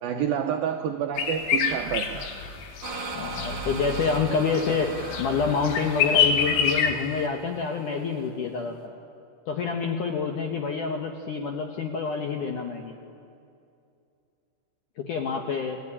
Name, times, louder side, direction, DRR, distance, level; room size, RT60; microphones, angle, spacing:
voice 1, 0.0-2.3, right 9 dB, 85° right, 5 dB, 2.0 m, -28 dB
sound 1, 1.2-6.9, left 7 dB, 90° left, 4.4 m, -27 dB
sound 2, 2.8-8.3, right 3 dB, 30° right, 2.8 m, -39 dB
voice 2, 3.2-8.9 9.5-13.0 15.0-15.8, left 5 dB, 70° left, 3 dB, 2.0 m, -28 dB
28.5 x 19.0 x 9.9 m, 2.5 s
omnidirectional pair, 5.5 m